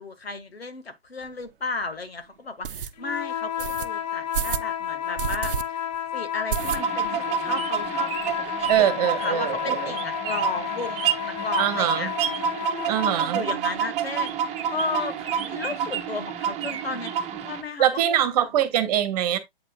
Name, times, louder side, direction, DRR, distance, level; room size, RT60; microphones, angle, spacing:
voice 1, 0.0-5.8 6.1-12.7 13.0-18.3, left 3 dB, 80° left, 1.7 m, -34 dB
sound 1, 1.2-1.3 1.8-1.9 2.6-2.9 3.6-3.9 4.3-4.7 5.2-5.6 5.9-6.0 6.5-7.1 7.5-7.6 7.8-7.9 8.2-8.8, right 9 dB, 60° right, 0.8 m, -30 dB
sound 2, 3.0-13.2, left 10 dB, 45° left, 0.9 m, -31 dB
sound 3, 6.6-17.6, right 8 dB, 20° right, 1.4 m, -29 dB
voice 2, 8.7-9.9 11.6-12.1 12.9-13.4 17.8-19.4, right 11 dB, 40° right, 1.4 m, -23 dB
8.3 x 7.6 x 2.3 m
figure-of-eight pair, 120°, 30 cm